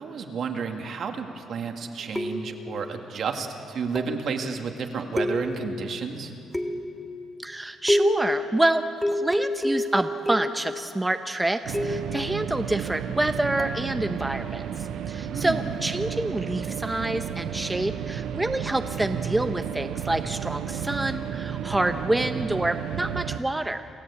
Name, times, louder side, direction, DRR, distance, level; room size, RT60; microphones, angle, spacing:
voice 1, 0.0-6.3 15.3-15.6, right 5 dB, 65° right, 4 dB, 2.2 m, -31 dB
sound 1, 2.1-2.7 3.9-4.3 5.2-5.8 6.5-7.0 7.9-8.4 9.0-10.7 11.7-12.2 13.6-13.8, left 1 dB, 5° left, 1.4 m, -27 dB
voice 2, 7.4-23.9, right 1 dB, 15° right, 8 dB, 0.8 m, -27 dB
sound 2, 11.6-23.4, right 8 dB, 80° right, 0.8 m, -32 dB
28.0 x 14.0 x 8.4 m, 2.9 s
cardioid pair, 90°, 0 cm